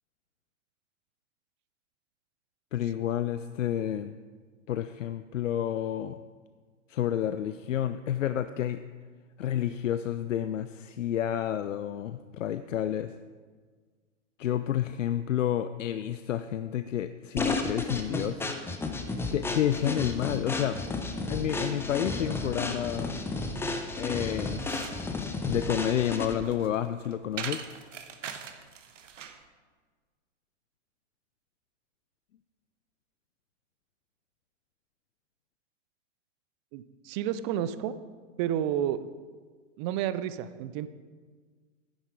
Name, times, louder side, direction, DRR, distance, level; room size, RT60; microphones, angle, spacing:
voice 1, 2.7-4.2 4.7-6.2 6.9-8.8 9.4-13.1 14.4-18.5 19.3-20.8 21.3-23.1 23.9-24.6 25.5-27.6, left 11 dB, 80° left, 11 dB, 0.6 m, -30 dB
sound 1, 17.4-26.5, left 2 dB, 5° left, 0.7 m, -33 dB
sound 2, 18.5-26.2, left 5 dB, 45° left, 2.1 m, -46 dB
sound 3, 24.3-29.5, right 7 dB, 75° right, 1.1 m, -42 dB
voice 2, 36.7-38.0 38.4-39.1 39.8-40.9, right 10 dB, 25° right, 14 dB, 0.4 m, -30 dB
11.0 x 10.5 x 4.7 m, 1.5 s
hypercardioid pair, 115°, 38 cm